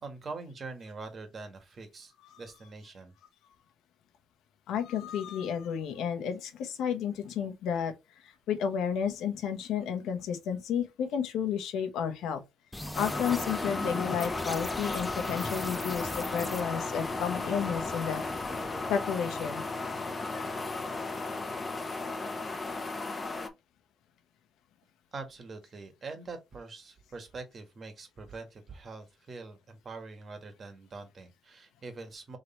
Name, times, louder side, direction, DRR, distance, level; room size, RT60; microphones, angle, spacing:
voice 1, 0.0-3.1 25.1-32.4, right 3 dB, 45° right, 1.6 m, -44 dB
voice 2, 4.7-12.4 13.0-18.2 18.9-19.6 20.3-20.5, left 8 dB, 85° left, 1.0 m, -32 dB
sound 1, 12.7-18.9, left 1 dB, 10° left, 0.6 m, -40 dB
sound 2, 12.9-23.5, left 3 dB, 30° left, 1.0 m, -35 dB
3.8 x 3.2 x 4.3 m
cardioid pair, 90°, 0 cm